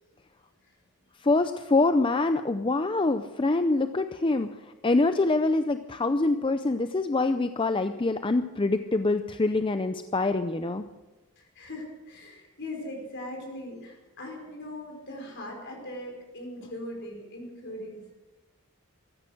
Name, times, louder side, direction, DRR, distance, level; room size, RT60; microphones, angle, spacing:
voice 1, 1.2-10.8, left 2 dB, 25° left, 9 dB, 0.5 m, -25 dB
voice 2, 11.4-18.0, left 1 dB, 55° left, 0 dB, 4.8 m, -40 dB
16.5 x 13.5 x 6.4 m, 1.1 s
head